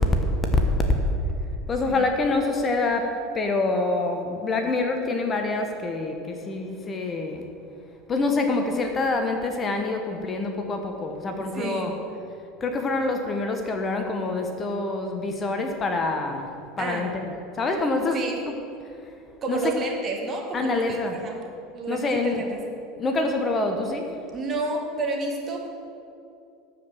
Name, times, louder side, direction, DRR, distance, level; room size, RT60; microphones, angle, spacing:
voice 1, 1.7-7.4 8.1-11.9 12.6-18.3 18.8-18.9 19.5-19.7 20.5-21.2 21.9-22.4 23.0-24.1, left 3 dB, 30° left, 5 dB, 1.2 m, -26 dB
voice 2, 11.5-11.9 16.8-17.1 18.1-18.4 19.4-21.4 21.7-22.6 24.3-25.7, right 3 dB, 35° right, 1 dB, 1.9 m, -30 dB
12.5 x 5.2 x 7.4 m, 2.5 s
figure-of-eight pair, 70°, 0 cm